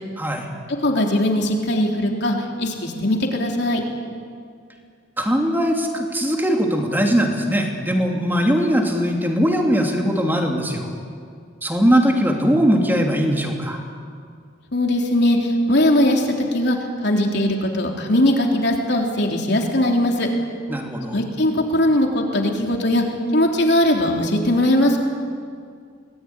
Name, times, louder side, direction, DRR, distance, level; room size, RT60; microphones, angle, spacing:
voice 1, 0.8-3.8 14.7-15.4 15.7-16.2 16.5-16.8 17.0-20.3 21.1-23.0 23.3-25.0, left 1 dB, 60° left, 1 dB, 3.6 m, -19 dB
voice 2, 5.2-10.9 11.6-13.8 20.7-21.2, equal, 10° right, 1 dB, 2.9 m, -20 dB
25.0 x 19.5 x 9.8 m, 2.2 s
head